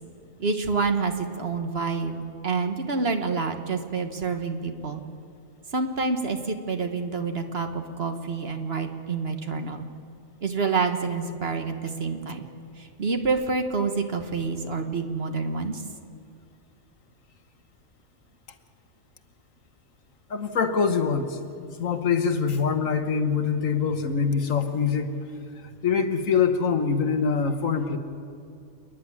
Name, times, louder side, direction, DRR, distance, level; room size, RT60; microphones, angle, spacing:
voice 1, 0.4-5.0 5.7-9.8 10.4-12.5 13.0-15.8, right 4 dB, 50° right, 6 dB, 1.5 m, -28 dB
voice 2, 20.3-25.1 25.8-28.0, left 6 dB, 75° left, 8 dB, 1.6 m, -24 dB
28.0 x 10.5 x 9.7 m, 2.4 s
omnidirectional pair, 1.4 m